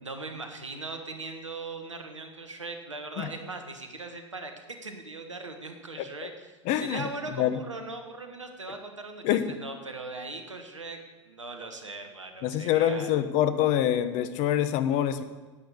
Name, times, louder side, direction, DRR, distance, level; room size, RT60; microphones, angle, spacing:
voice 1, 0.0-13.1, right 3 dB, 90° right, 5 dB, 1.6 m, -40 dB
voice 2, 6.6-7.1 7.4-7.6 9.2-9.5 12.4-15.2, left 11 dB, 50° left, 12 dB, 1.1 m, -25 dB
10.5 x 9.0 x 8.0 m, 1.3 s
figure-of-eight pair, 85°, 15 cm